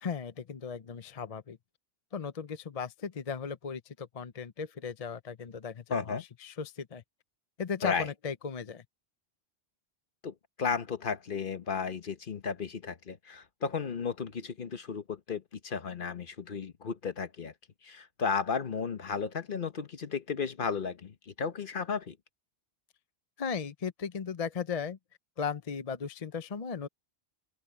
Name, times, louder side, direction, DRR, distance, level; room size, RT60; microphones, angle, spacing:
voice 1, 0.0-1.6 2.1-7.0 7.6-8.8 23.4-25.0 25.4-26.9, left 6 dB, 40° left, 0.7 m, -36 dB
voice 2, 5.9-6.2 7.8-8.1 10.2-17.5 17.8-22.2, left 5 dB, 55° left, 1.1 m, -34 dB
open air
omnidirectional pair, 1.1 m